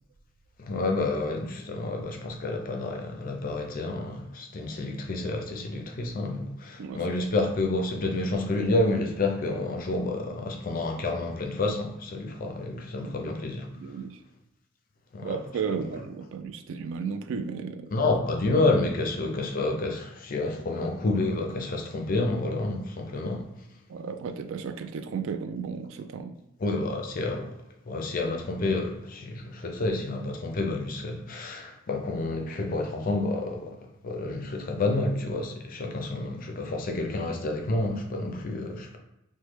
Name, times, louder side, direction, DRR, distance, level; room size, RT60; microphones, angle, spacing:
voice 1, 0.6-13.7 15.1-15.4 15.7-15.9 17.9-23.5 26.6-27.5 27.9-33.8 34.0-39.0, left 2 dB, 40° left, 0.4 m, -29 dB
voice 2, 13.8-14.2 15.2-17.9 23.9-26.4, right 6 dB, 70° right, 0.3 m, -34 dB
3.1 x 2.1 x 3.2 m
head